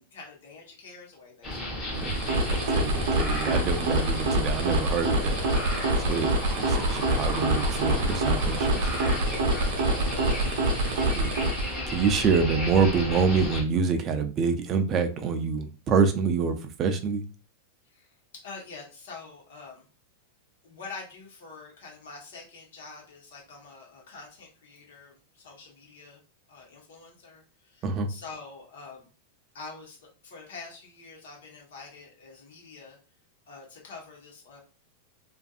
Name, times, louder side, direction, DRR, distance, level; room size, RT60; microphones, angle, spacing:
voice 1, 0.0-1.8 17.9-19.9 20.6-26.2 26.5-29.1 29.5-30.0 30.2-33.0 33.5-34.6, left 4 dB, 80° left, -2 dB, 1.1 m, -46 dB
sound 1, 1.4-13.6, left 1 dB, 20° left, 1.0 m, -33 dB
sound 2, 1.9-11.8, right 1 dB, 70° right, 0.6 m, -26 dB
voice 2, 2.5-5.4 6.0-6.3 6.6-8.9 10.9-11.3 11.9-17.2 27.8-28.1, right 5 dB, 30° right, 7 dB, 0.4 m, -26 dB
2.5 x 2.5 x 2.3 m, 0.35 s
supercardioid pair, 150°, 0 cm